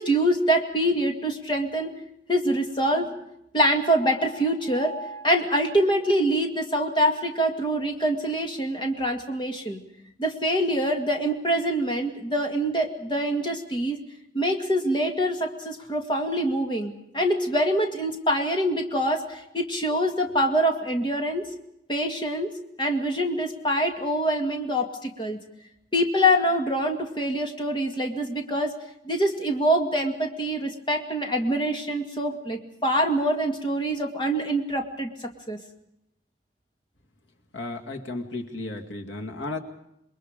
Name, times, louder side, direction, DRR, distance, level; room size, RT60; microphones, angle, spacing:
voice 1, 0.0-1.9 2.3-3.1 3.5-9.8 10.2-14.0 14.3-21.5 21.9-25.4 25.9-28.7 29.1-35.1 35.5-35.6, equal, 25° left, 3 dB, 2.1 m, -25 dB
voice 2, 37.5-39.6, left 2 dB, 85° left, 3 dB, 2.1 m, -34 dB
27.5 x 21.5 x 5.1 m, 0.81 s
head